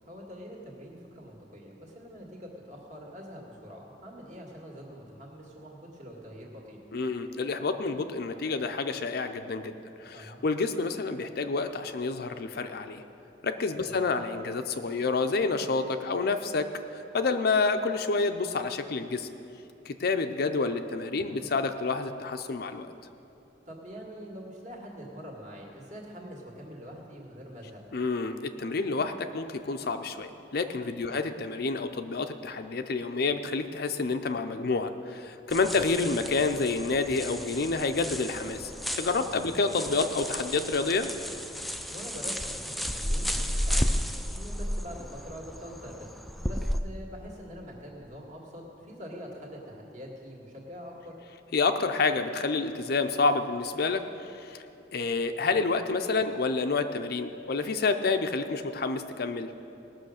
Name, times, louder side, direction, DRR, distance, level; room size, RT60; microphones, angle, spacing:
voice 1, 0.0-6.8 10.1-10.4 13.8-14.0 21.2-21.4 23.7-27.8 31.1-31.2 35.8-35.9 39.3-39.6 41.9-46.1 46.3-51.2, equal, 45° right, -1 dB, 2.0 m, -44 dB
voice 2, 6.9-13.0 13.4-16.7 16.9-19.3 19.9-22.9 27.9-38.7 39.0-41.1 51.5-54.0 54.4-54.6 54.9-59.5, left 4 dB, 60° left, 7 dB, 0.5 m, -29 dB
sound 1, 35.5-46.8, equal, ahead, 0.4 m, -33 dB
18.5 x 6.3 x 6.4 m, 2.8 s
head